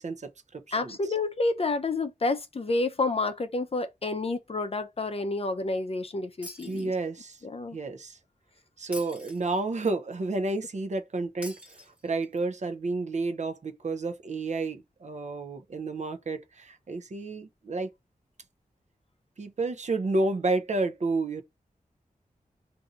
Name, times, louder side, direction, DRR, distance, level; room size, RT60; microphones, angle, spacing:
voice 1, 0.0-1.0 6.7-7.4 7.7-8.2 8.8-17.9 19.4-21.4, right 3 dB, 55° right, 0.6 m, -31 dB
voice 2, 0.7-6.9 7.4-7.8, left 3 dB, 45° left, 0.5 m, -29 dB
Shatter, 6.4-7.4 8.9-9.9 11.4-12.4, left 1 dB, 10° right, 1.1 m, -46 dB
2.6 x 2.5 x 4.0 m
wide cardioid pair, 70°, 14 cm